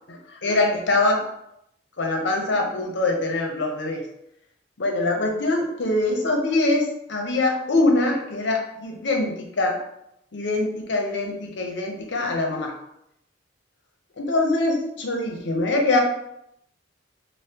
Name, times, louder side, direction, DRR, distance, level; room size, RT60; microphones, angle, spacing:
voice 1, 0.1-1.3 2.0-4.0 4.8-9.8 10.3-12.7 14.2-16.0, left 2 dB, 65° left, 2 dB, 0.6 m, -23 dB
5.4 x 2.0 x 2.7 m, 0.78 s
head